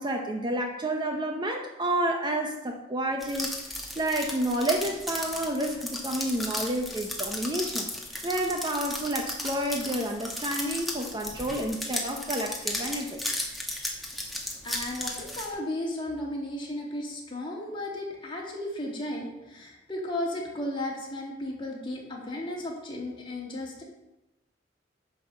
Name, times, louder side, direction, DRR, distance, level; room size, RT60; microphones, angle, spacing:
voice 1, 0.0-3.6 4.0-7.9 8.2-13.2, right 1 dB, 25° right, 3 dB, 0.8 m, -30 dB
sound 1, 3.2-15.5, left 1 dB, ahead, 1.5 m, -35 dB
voice 2, 14.6-23.8, left 1 dB, 25° left, -2 dB, 2.4 m, -34 dB
9.9 x 5.0 x 6.8 m, 0.98 s
head